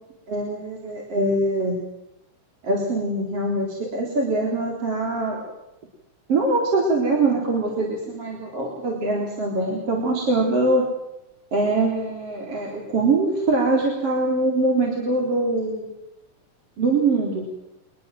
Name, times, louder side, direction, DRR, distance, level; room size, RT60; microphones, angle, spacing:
voice 1, 0.3-1.8 2.6-5.5 6.3-10.9 11.5-15.9 16.8-17.5, right 2 dB, 50° right, -1 dB, 4.9 m, -23 dB
24.5 x 20.5 x 7.7 m, 0.87 s
omnidirectional pair, 3.5 m